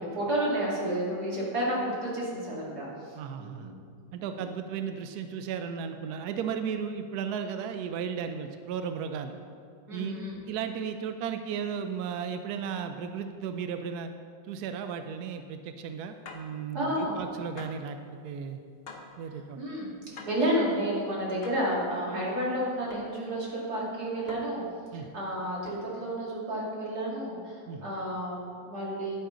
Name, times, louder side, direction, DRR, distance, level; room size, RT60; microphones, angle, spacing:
voice 1, 0.0-3.8 4.2-4.5 9.9-10.3 16.7-17.1 19.5-19.9 20.2-24.6 24.9-29.2, right 1 dB, 50° right, -5 dB, 2.8 m, -31 dB
voice 2, 3.2-3.7 4.1-9.4 9.9-10.2 10.5-14.1 14.4-18.0 18.2-18.6 19.2-19.6 24.9-25.1 27.7-27.9, right 7 dB, 75° right, 7 dB, 0.9 m, -35 dB
sound 1, 16.2-16.6 17.6-17.9 18.9-19.2 20.2-20.5 21.4-21.7 22.9-23.2 24.3-24.7 25.7-26.0, left 3 dB, 50° left, 0.7 m, -45 dB
10.5 x 9.7 x 3.8 m, 2.2 s
omnidirectional pair, 2.2 m